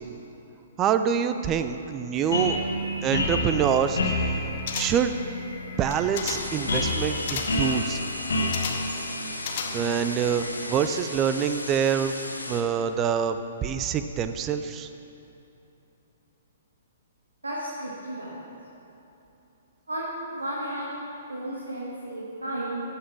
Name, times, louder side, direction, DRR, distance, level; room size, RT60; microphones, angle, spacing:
voice 1, 0.8-2.6 3.0-4.2 4.7-5.2 5.8-8.0 9.7-12.1 12.5-14.9, right 8 dB, 20° right, 9 dB, 0.4 m, -26 dB
sound 1, 2.1-10.8, left 1 dB, 65° left, 1.3 m, -30 dB
sound 2, 4.7-5.2 5.8-6.6 7.3-7.7 8.5-9.0 9.4-10.1 10.4-10.5, left 6 dB, 45° left, 0.8 m, -34 dB
sound 3, 6.3-12.6, left 1 dB, 85° left, 0.9 m, -37 dB
voice 2, 17.4-18.4 19.9-22.8, right 1 dB, 75° right, -5 dB, 1.7 m, -33 dB
13.5 x 5.8 x 4.8 m, 3.0 s
figure-of-eight pair, 120°, 0 cm